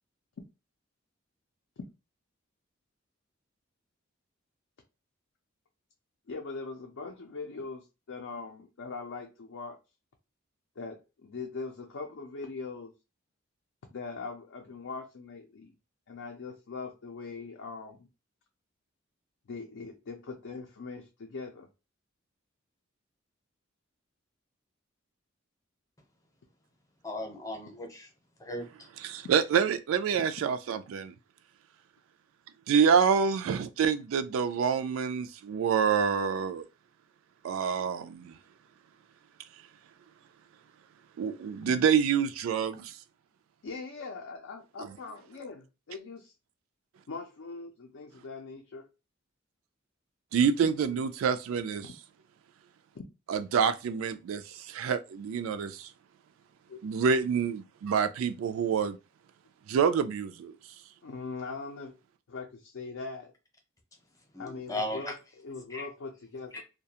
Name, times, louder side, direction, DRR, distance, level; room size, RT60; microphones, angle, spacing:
voice 1, 6.3-9.8 10.8-12.9 13.9-15.7 16.1-18.1 19.5-21.7 41.6-41.7 43.6-46.3 47.1-48.8 51.8-51.9 52.9-53.0 56.7-56.8 61.0-61.9 62.3-63.3 64.4-66.6, left 4 dB, 70° left, 0.5 m, -41 dB
voice 2, 27.0-28.1 28.4-28.7 64.3-65.1 65.7-65.9 66.5-66.6, left 1 dB, 15° left, 0.7 m, -36 dB
voice 3, 29.0-31.1 32.7-36.7 37.4-38.4 41.2-43.0 50.3-51.9 53.3-55.9 56.8-59.0 59.7-60.5, right 6 dB, 90° right, 0.3 m, -27 dB
2.3 x 2.2 x 2.8 m
head